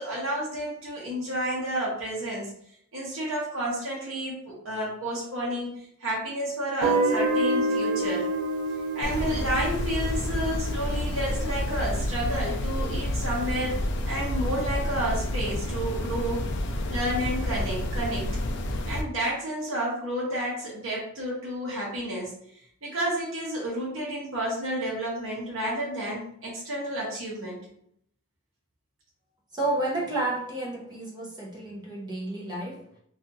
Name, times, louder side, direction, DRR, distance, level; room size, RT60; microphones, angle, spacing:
voice 1, 0.0-2.5 2.9-8.3 8.9-16.5 16.9-18.3 18.8-22.3 22.8-27.6, right 1 dB, 65° right, -5 dB, 0.8 m, -31 dB
Guitar, 6.8-11.7, right 2 dB, 85° right, 0.4 m, -28 dB
sound 1, 9.0-19.0, left 1 dB, 55° left, 0.3 m, -29 dB
voice 2, 29.5-32.9, right 2 dB, 20° right, -4 dB, 0.6 m, -31 dB
2.7 x 2.3 x 2.6 m, 0.69 s
head